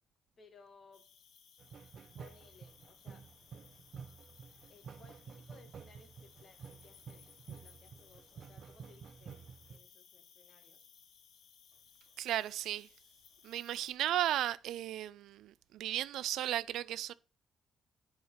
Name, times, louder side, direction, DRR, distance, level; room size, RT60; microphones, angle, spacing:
voice 1, 0.4-1.1 2.2-3.3 4.7-10.9, left 4 dB, 50° left, 2.1 m, -62 dB
Cricket, 0.9-13.9, left 8 dB, 75° left, 1.2 m, -62 dB
sound 1, 1.6-9.8, right 6 dB, 55° right, 0.7 m, -51 dB
voice 2, 12.2-12.9 13.4-17.1, right 13 dB, 85° right, 0.3 m, -35 dB
7.9 x 4.8 x 5.7 m
cardioid pair, 90°, 0 cm